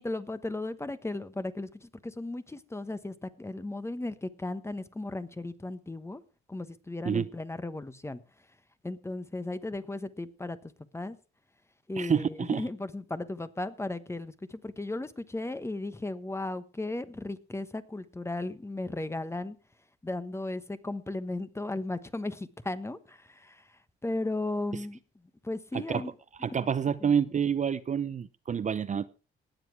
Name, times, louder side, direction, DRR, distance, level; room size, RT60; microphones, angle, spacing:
voice 1, 0.0-6.2 6.5-8.2 8.8-10.6 10.9-11.2 11.9-19.6 20.0-25.0 25.4-26.1 27.0-27.1, left 2 dB, 15° left, 12 dB, 1.2 m, -36 dB
voice 2, 12.0-12.6 25.7-26.0 26.4-29.1, right 7 dB, 40° right, 13 dB, 0.7 m, -28 dB
19.0 x 7.7 x 4.7 m, 0.34 s
cardioid pair, 90°, 20 cm